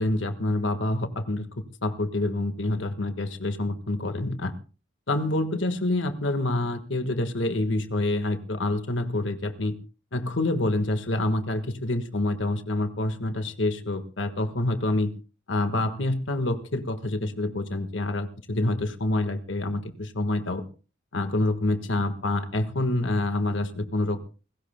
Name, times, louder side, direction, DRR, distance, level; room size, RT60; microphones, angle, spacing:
voice 1, 0.0-1.5 1.8-4.5 5.1-9.7 10.1-15.1 15.5-20.6 21.1-24.2, left 2 dB, 80° left, 9 dB, 1.5 m, -27 dB
29.0 x 16.0 x 2.2 m, 0.36 s
head